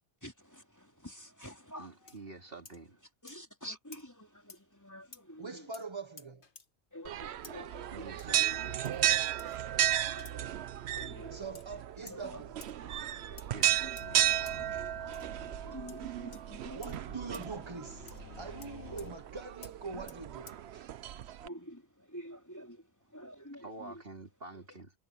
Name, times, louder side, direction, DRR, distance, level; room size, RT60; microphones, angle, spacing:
voice 1, 0.2-2.2 3.2-5.7 6.9-9.2 10.1-11.6 12.1-12.4 12.8-14.9 15.6-17.2 21.4-24.0 24.5-24.6, equal, 15° left, 3.2 m, -49 dB
voice 2, 1.8-3.0 7.9-8.8 13.5-14.0 23.6-24.9, right 3 dB, 60° right, 3.2 m, -48 dB
sound 1, 2.1-2.2 2.6-2.8 3.3-3.4 3.9-4.0 4.5-4.6 5.1-5.2 5.7-5.9 6.2-6.7 7.4-7.6 8.2-8.3 8.8-9.0 9.4-9.6 10.2-10.4 11.5-11.7 12.1-12.2 12.6-12.7 13.4-14.1 14.5-14.6 15.1-15.3 15.9-16.0 16.3-16.4 16.8-17.0 17.3-17.5 18.1-18.2 18.6-18.7 19.0-19.1 19.6-19.7 20.1-20.2 20.5-20.6, left 4 dB, 55° left, 1.6 m, -52 dB
voice 3, 5.4-6.4 11.3-12.6 16.7-20.9, right 4 dB, 25° right, 1.3 m, -43 dB
sound 2, 7.1-21.5, right 12 dB, 80° right, 0.9 m, -34 dB
sound 3, 14.0-19.1, left 8 dB, 85° left, 1.2 m, -52 dB
omnidirectional pair, 1.1 m